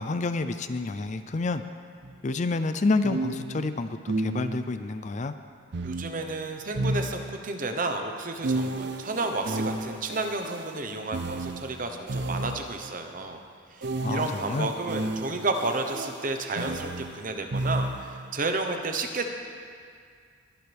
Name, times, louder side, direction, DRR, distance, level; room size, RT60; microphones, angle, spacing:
voice 1, 0.0-1.6 2.2-5.3 14.0-14.7, left 3 dB, 40° left, 10 dB, 0.4 m, -28 dB
sound 1, 2.0-2.2 3.0-4.8 5.7-7.6 8.4-12.9 13.8-18.3, right 2 dB, 60° right, 0.6 m, -33 dB
voice 2, 5.8-13.4 13.7-19.3, right 3 dB, 45° right, 5 dB, 1.0 m, -31 dB
22.0 x 10.5 x 3.5 m, 2.1 s
head